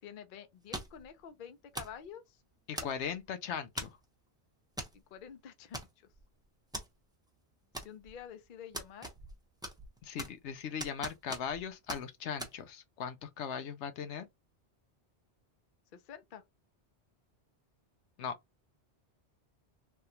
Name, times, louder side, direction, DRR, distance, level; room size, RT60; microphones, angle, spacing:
voice 1, 0.0-2.4 4.9-6.1 7.8-9.1 15.9-16.4, left 8 dB, 55° left, 0.7 m, -49 dB
sound 1, 0.7-1.1 1.7-2.0 2.8-3.2 3.8-4.0 4.8-5.0 5.2-5.3 5.7-6.2 6.7-6.9 7.7-8.2 8.7-9.4 9.6-10.5 10.8-11.6 11.9-12.0 12.4-12.5, right 1 dB, 5° right, 0.6 m, -41 dB
voice 2, 2.7-4.0 10.0-14.3 18.2-18.4, left 7 dB, 80° left, 0.9 m, -39 dB
3.4 x 2.3 x 2.7 m
omnidirectional pair, 1.2 m